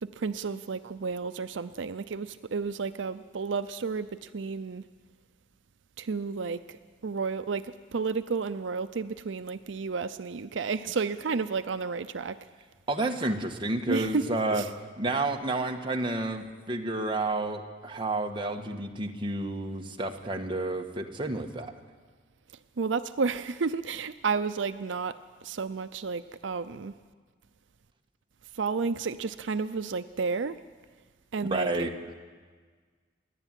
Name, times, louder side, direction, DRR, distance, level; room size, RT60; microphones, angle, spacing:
voice 1, 0.0-4.8 6.0-12.4 13.9-14.7 22.8-25.2 25.4-26.9 28.5-30.6 31.3-32.1, right 4 dB, 80° right, 11 dB, 0.6 m, -32 dB
voice 2, 12.9-14.6 15.0-21.7 31.5-31.9, right 2 dB, 25° right, 2 dB, 1.5 m, -30 dB
28.0 x 11.0 x 9.1 m, 1.5 s
head